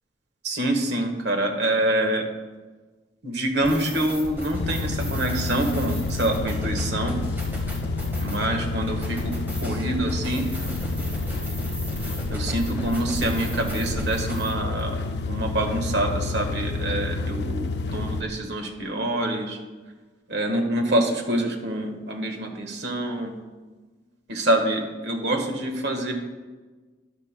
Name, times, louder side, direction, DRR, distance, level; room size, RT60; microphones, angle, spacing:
voice 1, 0.4-2.2 3.2-7.2 8.2-9.4 9.6-10.5 12.3-15.0 15.3-19.6 20.3-23.3 24.3-26.1, right 1 dB, 75° right, 3 dB, 1.4 m, -26 dB
sound 1, 3.6-14.5, equal, 10° right, 1.4 m, -36 dB
sound 2, 4.5-18.2, left 3 dB, 70° left, 0.5 m, -29 dB
13.0 x 10.5 x 2.2 m, 1.3 s
head